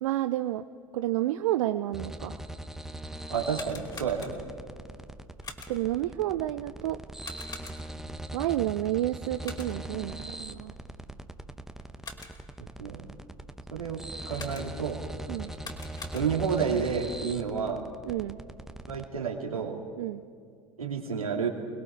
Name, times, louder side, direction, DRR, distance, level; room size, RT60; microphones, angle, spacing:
voice 1, 0.0-0.6 0.9-2.4 5.7-7.0 8.3-10.7 15.3-15.5 18.1-18.4 20.0-20.2, right 14 dB, 60° right, 10 dB, 0.6 m, -30 dB
sound 1, 1.9-19.1, right 1 dB, ahead, 1.2 m, -41 dB
voice 2, 3.3-4.3 12.8-13.0 13.7-15.0 16.1-17.8 18.9-19.8 20.8-21.5, right 6 dB, 85° right, 1 dB, 2.9 m, -30 dB
sound 2, 3.4-4.7 5.4-6.0 7.2-8.1 9.4-10.0 11.8-12.6 14.3-15.0 15.5-16.6, left 3 dB, 25° left, 3.2 m, -45 dB
29.5 x 21.0 x 4.7 m, 2.2 s
figure-of-eight pair, 75°, 18 cm